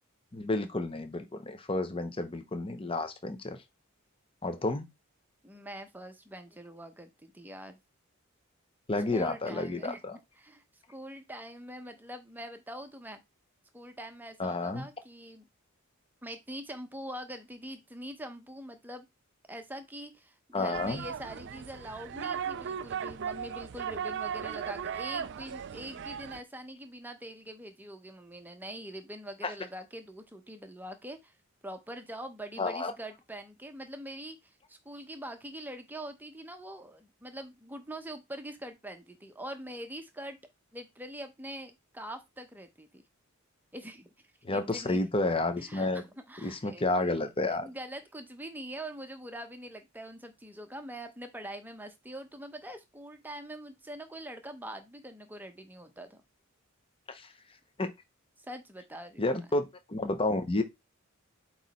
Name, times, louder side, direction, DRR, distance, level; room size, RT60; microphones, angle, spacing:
voice 1, 0.3-3.6 4.4-4.9 8.9-10.1 14.4-14.9 20.5-21.0 29.4-29.5 32.6-32.9 44.4-46.0 46.4-47.7 57.1-57.3 57.8-57.9 59.2-60.6, left 2 dB, 25° left, 0.8 m, -31 dB
voice 2, 5.4-7.8 9.1-10.0 10.4-10.6 10.9-13.2 13.7-15.5 16.2-19.1 19.5-31.3 31.6-40.4 40.7-43.0 43.7-44.1 44.5-45.0 45.6-47.2 47.5-56.2 58.4-59.3, right 1 dB, 10° right, 0.8 m, -44 dB
sound 1, 20.7-26.4, right 7 dB, 55° right, 0.4 m, -37 dB
8.2 x 3.1 x 4.1 m
head